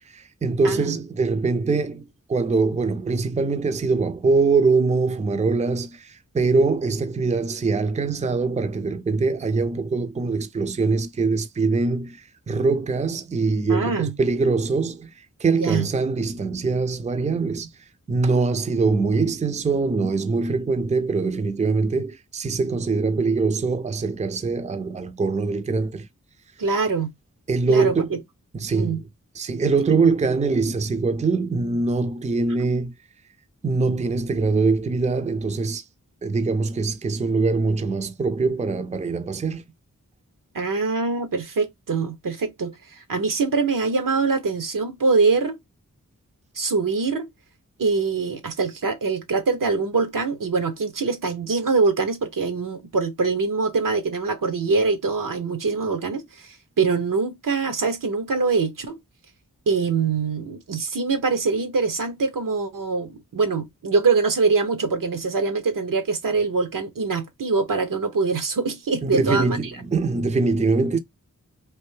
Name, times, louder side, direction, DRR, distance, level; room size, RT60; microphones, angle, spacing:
voice 1, 0.1-15.1 15.4-17.7 18.1-26.1 27.5-28.1 28.5-29.0 29.4-32.9 33.6-35.8 36.2-39.6 69.0-71.0, right 4 dB, 20° right, 0.4 m, -23 dB
voice 2, 0.6-1.0 13.7-14.1 15.5-15.9 26.6-27.1 27.7-28.1 28.7-29.0 40.5-42.7 43.1-45.6 46.6-47.3 47.8-56.5 56.8-59.0 59.7-69.6, right 4 dB, 75° right, 0.8 m, -23 dB
3.3 x 2.6 x 3.2 m
cardioid pair, 45°, 32 cm